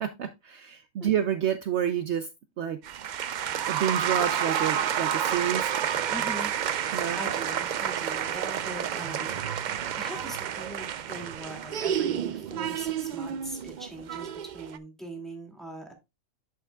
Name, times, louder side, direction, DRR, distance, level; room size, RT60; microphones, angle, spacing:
voice 1, 0.0-2.3 2.6-2.8 3.7-5.7 6.9-7.2, right 9 dB, 65° right, 9 dB, 0.9 m, -29 dB
sound 1, 2.8-14.8, right 9 dB, 85° right, 0.4 m, -30 dB
voice 2, 6.1-6.5 7.1-14.3 14.5-15.9, right 1 dB, ahead, 2 dB, 2.2 m, -41 dB
11.0 x 5.8 x 2.3 m, 0.23 s
omnidirectional pair, 1.4 m